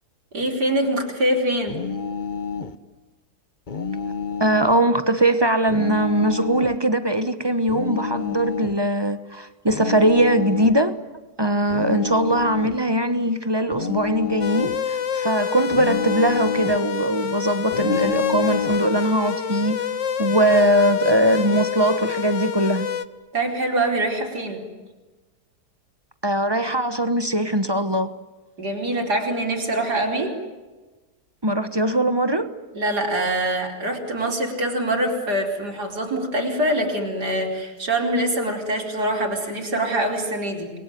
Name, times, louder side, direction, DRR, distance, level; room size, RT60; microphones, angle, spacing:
voice 1, 0.3-1.8 23.3-24.6 28.6-30.4 32.7-40.7, right 1 dB, 80° right, 5.0 m, -24 dB
sound 1, 1.7-2.8 3.7-4.8 5.7-6.8 7.7-8.8 9.7-10.8 11.7-12.8 13.7-14.8 15.7-16.8 17.7-18.8, left 5 dB, 35° left, 1.0 m, -29 dB
voice 2, 4.4-10.9 11.4-19.8 20.2-22.9 26.2-28.1 31.4-32.5, right 1 dB, 15° right, 1.1 m, -21 dB
sound 2, 14.4-23.1, left 8 dB, 50° left, 1.3 m, -27 dB
28.5 x 22.0 x 9.4 m
omnidirectional pair, 1.7 m